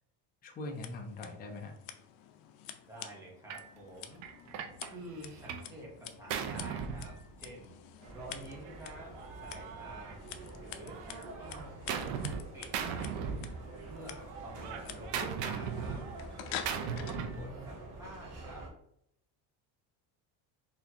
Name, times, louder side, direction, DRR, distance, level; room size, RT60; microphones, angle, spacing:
voice 1, 0.4-1.7 17.1-17.8, left 2 dB, 20° left, 2 dB, 0.4 m, -43 dB
Scissors, 0.6-17.2, left 10 dB, 75° left, 0.6 m, -49 dB
voice 2, 2.8-4.2 4.9-7.7 8.1-9.1 9.4-10.2 10.6-13.1 13.9-16.0 17.0-18.7, right 1 dB, 5° right, -4 dB, 0.9 m, -49 dB
Gunshot gunfire, 3.5-3.7 4.2-5.7 6.0-7.7 8.7-10.5 10.9-12.4 12.7-14.0 14.3-17.5, right 7 dB, 70° right, 0.7 m, -39 dB
sound 1, 8.0-18.7, right 2 dB, 40° right, 0.9 m, -48 dB
4.2 x 2.8 x 2.8 m, 0.75 s
cardioid pair, 160°, 46 cm